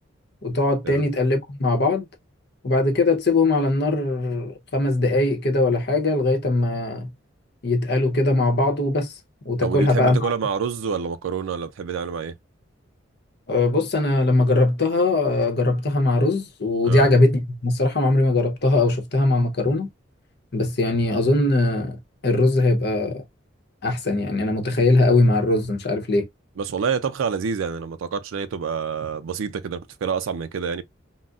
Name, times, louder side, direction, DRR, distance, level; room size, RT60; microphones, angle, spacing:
voice 1, 0.4-2.1 2.6-7.1 7.6-9.1 9.4-10.3 13.5-19.9 20.5-23.2 23.8-26.3, left 2 dB, 55° left, 0.8 m, -20 dB
voice 2, 9.6-12.3 16.8-17.1 26.6-30.8, right 6 dB, 85° right, 0.4 m, -27 dB
3.8 x 2.1 x 2.3 m
head